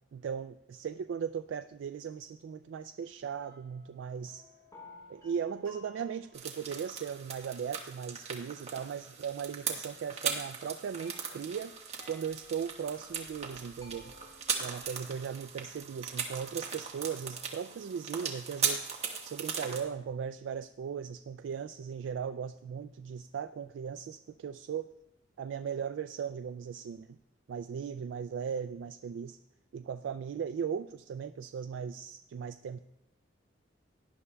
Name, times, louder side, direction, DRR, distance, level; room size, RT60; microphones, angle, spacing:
voice 1, 0.1-4.5 5.1-11.8 12.1-14.1 14.6-18.9 19.2-24.9 25.4-27.2 27.5-29.4 29.7-32.8, right 7 dB, 85° right, 11 dB, 0.3 m, -38 dB
sound 1, 2.7-2.8 3.4-17.5, left 1 dB, 20° left, 4.4 m, -59 dB
sound 2, 6.3-19.8, right 6 dB, 35° right, 1.4 m, -38 dB
17.5 x 11.0 x 2.2 m, 0.86 s
head